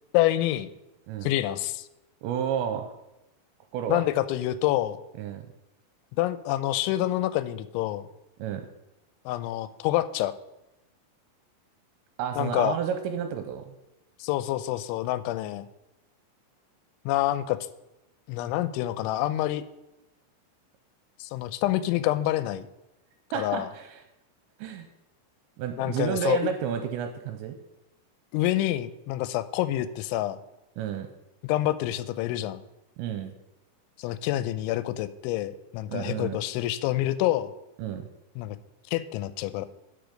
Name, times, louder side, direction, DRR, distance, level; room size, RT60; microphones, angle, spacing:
voice 1, 0.1-0.7 1.2-1.9 3.9-5.0 6.1-8.1 9.3-10.3 12.4-12.8 14.2-15.7 17.1-17.6 18.3-19.6 21.2-22.7 23.3-23.7 25.8-26.5 28.3-30.4 31.4-32.6 34.0-37.5 38.4-38.6 38.9-39.7, left 14 dB, 90° left, 13 dB, 3.0 m, -27 dB
voice 2, 2.2-2.9 3.7-4.0 5.2-5.5 8.4-8.7 12.2-13.7 23.3-24.0 24.6-24.9 25.6-27.6 30.8-31.1 33.0-33.3 35.9-36.4 37.8-38.1, right 8 dB, 85° right, 6 dB, 2.9 m, -31 dB
12.0 x 6.3 x 5.1 m, 0.93 s
omnidirectional pair, 5.3 m